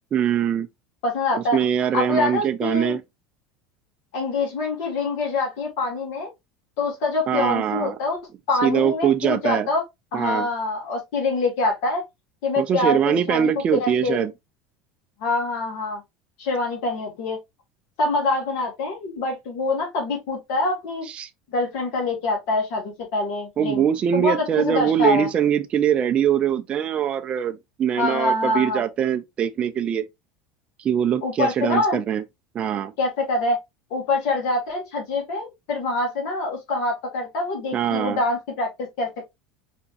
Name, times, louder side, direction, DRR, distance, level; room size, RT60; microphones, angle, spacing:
voice 1, 0.1-0.7 1.3-3.0 7.3-8.0 8.6-9.7 10.1-10.5 12.6-14.3 21.1-21.3 23.6-30.0 30.8-32.2 32.5-32.9 37.7-38.2, right 9 dB, 30° right, 0.4 m, -22 dB
voice 2, 1.0-1.6 1.9-3.0 4.1-6.3 6.8-8.2 8.5-9.8 10.1-12.0 12.4-14.3 15.2-16.0 16.4-17.4 18.0-21.1 21.5-23.8 24.1-25.3 28.0-28.8 31.2-32.0 33.0-33.6 33.9-38.7 39.0-39.3, left 3 dB, 70° left, 2.5 m, -25 dB
5.0 x 3.6 x 2.7 m
supercardioid pair, 130°, 4 cm